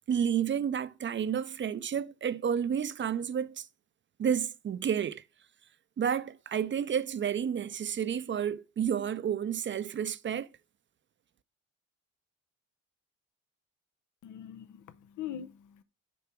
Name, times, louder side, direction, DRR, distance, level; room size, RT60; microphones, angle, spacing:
voice 1, 0.1-3.7 4.2-5.2 6.0-10.5, right 8 dB, 40° right, 0.6 m, -30 dB
voice 2, 14.2-15.8, left 10 dB, 80° left, 0.9 m, -42 dB
7.0 x 4.6 x 6.1 m
cardioid pair, 90°, 30 cm